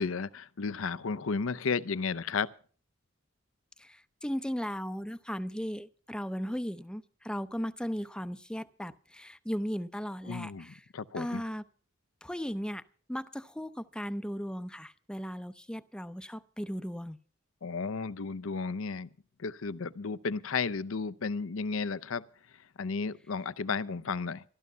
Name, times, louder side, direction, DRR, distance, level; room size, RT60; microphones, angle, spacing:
voice 1, 0.0-2.5 10.3-11.4 17.6-19.1 19.4-22.2 22.8-24.4, left 5 dB, 80° left, 0.7 m, -33 dB
voice 2, 3.8-10.9 11.1-11.6 12.2-12.8 13.1-17.2, equal, 5° left, 0.6 m, -36 dB
14.5 x 12.5 x 5.6 m
head